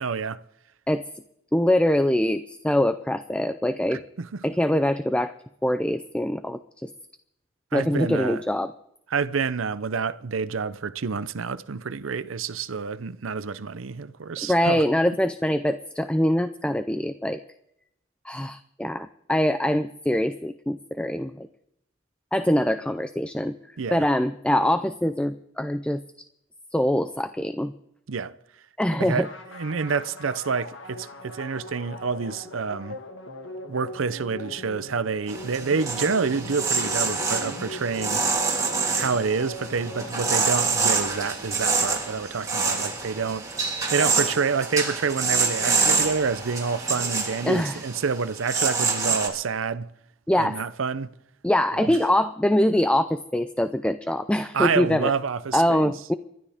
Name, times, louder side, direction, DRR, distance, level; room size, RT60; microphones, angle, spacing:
voice 1, 0.0-0.4 4.2-4.4 7.7-8.4 9.1-14.8 23.8-24.1 28.1-28.3 29.0-33.0 33.7-38.2 38.9-43.5 43.9-49.9 50.3-51.1 51.7-51.9 54.5-55.9, right 5 dB, 90° right, 0.7 m, -28 dB
voice 2, 1.5-4.0 4.4-5.3 5.6-6.9 7.7-8.7 14.5-17.4 18.3-21.5 22.3-23.6 23.9-26.0 26.7-27.7 28.8-29.3 47.4-47.8 50.3-50.6 51.4-55.1 55.5-56.1, left 1 dB, 5° left, 0.4 m, -23 dB
sound 1, 29.2-41.8, left 1 dB, 65° left, 1.7 m, -41 dB
sound 2, 35.3-49.3, right 4 dB, 15° right, 3.2 m, -26 dB
28.0 x 12.5 x 3.6 m
head